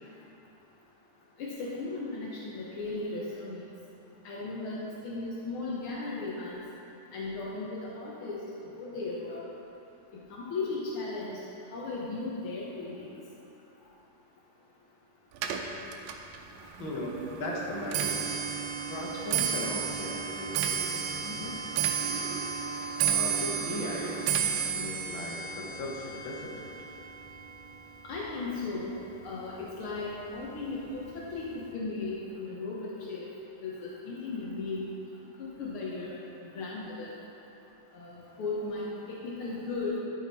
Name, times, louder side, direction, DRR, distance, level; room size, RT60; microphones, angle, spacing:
voice 1, 1.4-3.6 4.2-6.7 7.1-8.4 8.8-9.4 10.3-11.4 11.7-13.1 28.0-28.9 29.2-31.5 31.7-33.2 33.6-34.9 35.4-36.1 36.5-37.1 37.9-40.0, left 3 dB, 80° left, -5 dB, 1.2 m, -36 dB
Clock, 15.4-28.7 29.0-29.5 30.3-30.4 30.7-31.1 31.4-31.5, right 7 dB, 90° right, 2.4 m, -32 dB
voice 2, 16.8-18.6 18.9-21.8 22.5-22.7 23.0-26.9, left 2 dB, 60° left, -3 dB, 1.3 m, -38 dB
12.0 x 5.8 x 4.2 m, 2.9 s
omnidirectional pair, 3.9 m